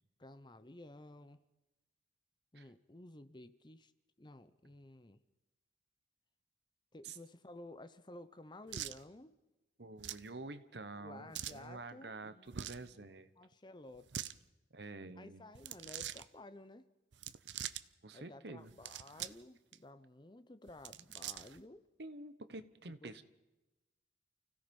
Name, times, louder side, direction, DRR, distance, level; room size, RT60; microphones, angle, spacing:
voice 1, 0.2-1.4 2.5-3.9 4.2-5.2 6.9-9.4 11.0-14.3 15.0-16.8 18.1-21.9 23.0-23.2, left 1 dB, 25° left, 13 dB, 0.8 m, -54 dB
sound 1, 8.7-9.0 10.0-10.3 11.3-11.6 12.5-12.9 13.9-14.4 15.5-16.2 17.1-17.8 18.7-19.4 19.7-19.8 20.7-21.6, right 10 dB, 80° right, 0.7 m, -44 dB
voice 2, 9.8-13.3 14.7-15.4 18.0-18.7 22.0-23.2, right 2 dB, 65° right, 12 dB, 1.2 m, -48 dB
29.5 x 16.5 x 5.4 m, 1.0 s
head